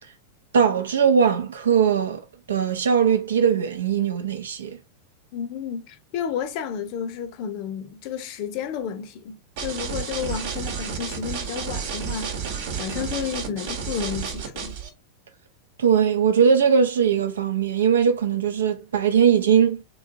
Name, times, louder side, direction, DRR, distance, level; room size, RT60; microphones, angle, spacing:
voice 1, 0.5-2.2 2.5-4.8 15.8-19.8, right 7 dB, 65° right, 0.7 m, -20 dB
voice 2, 5.3-14.8, left 8 dB, 45° left, 0.7 m, -31 dB
sound 1, 9.6-14.9, right 6 dB, 50° right, 1.0 m, -31 dB
3.5 x 3.1 x 3.7 m
figure-of-eight pair, 90°, 0 cm